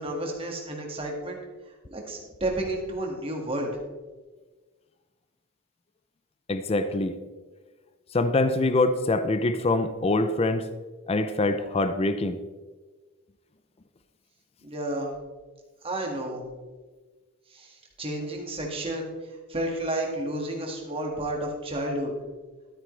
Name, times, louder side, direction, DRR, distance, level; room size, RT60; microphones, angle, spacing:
voice 1, 0.0-1.4 1.9-3.7 14.6-15.1 15.8-16.4 17.5-19.1 19.5-22.1, right 1 dB, 25° right, 0 dB, 1.8 m, -31 dB
voice 2, 6.5-7.2 8.1-10.7 11.1-12.4, left 2 dB, 25° left, 10 dB, 0.4 m, -24 dB
12.5 x 9.0 x 3.3 m, 1.3 s
head